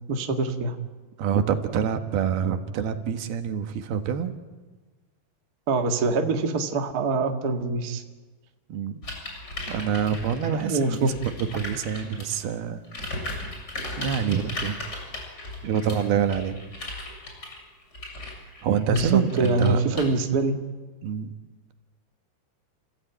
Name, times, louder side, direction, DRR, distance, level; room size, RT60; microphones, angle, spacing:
voice 1, 0.1-0.7 5.7-8.0 10.7-11.1 18.9-20.6, right 3 dB, 55° right, 4 dB, 1.0 m, -24 dB
voice 2, 1.2-4.3 8.7-9.0 9.7-11.1 11.4-13.4 14.0-14.8 15.6-16.6 18.6-19.8 21.0-21.3, right 8 dB, 75° right, 8 dB, 3.1 m, -26 dB
sound 1, 9.0-12.4 12.8-20.0, left 1 dB, 25° left, 7.6 m, -36 dB
30.0 x 16.0 x 9.1 m, 1.3 s
omnidirectional pair, 4.6 m